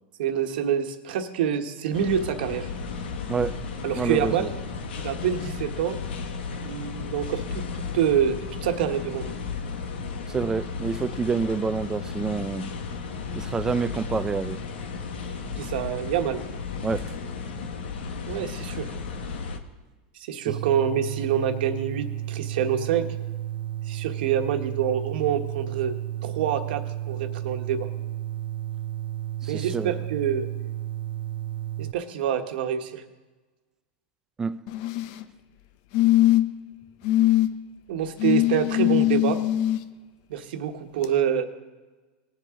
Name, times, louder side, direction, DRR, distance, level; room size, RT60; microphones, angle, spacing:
voice 1, 0.2-2.7 3.8-4.5 5.0-6.0 6.6-9.3 15.6-16.4 18.3-18.9 20.2-23.1 23.9-25.9 26.2-27.9 29.5-30.5 31.8-33.0 37.9-39.4 40.3-41.5, right 8 dB, 70° right, 1.3 m, -26 dB
sound 1, 1.9-19.6, left 5 dB, 85° left, 1.3 m, -34 dB
voice 2, 3.3-3.6 3.9-4.5 10.3-12.7 13.3-14.6 16.8-17.1 20.5-20.6 29.4-29.9 34.4-34.6, right 5 dB, 10° right, 0.4 m, -28 dB
sound 2, 20.5-31.9, right 13 dB, 85° right, 0.4 m, -32 dB
sound 3, 34.7-35.2 35.9-36.6 37.0-37.5 38.2-39.8 41.0-41.1, left 14 dB, 50° left, 0.6 m, -21 dB
20.5 x 7.6 x 3.8 m
supercardioid pair, 150°, 6 cm